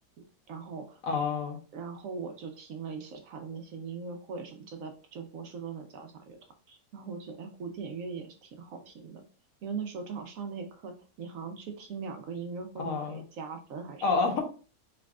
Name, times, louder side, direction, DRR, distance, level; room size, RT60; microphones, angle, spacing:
voice 1, 0.5-1.0 1.7-6.4 6.7-9.2 9.6-14.0 14.3-14.4, right 5 dB, 65° right, 5 dB, 1.0 m, -40 dB
voice 2, 1.0-1.6 12.8-13.2 14.0-14.4, left 4 dB, 65° left, 4 dB, 1.1 m, -28 dB
4.9 x 3.3 x 2.3 m, 0.37 s
omnidirectional pair, 1.7 m